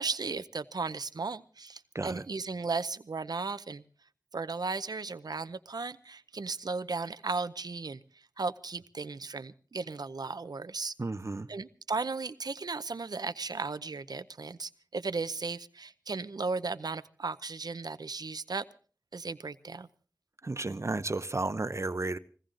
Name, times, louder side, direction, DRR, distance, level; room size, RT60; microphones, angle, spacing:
voice 1, 0.0-3.8 4.3-8.0 8.4-10.9 11.5-18.6 19.1-19.9, right 4 dB, 90° right, 0.7 m, -35 dB
voice 2, 11.0-11.5 20.4-22.2, right 2 dB, 45° right, 0.8 m, -33 dB
21.5 x 16.5 x 3.8 m
wide cardioid pair, 65°, 7 cm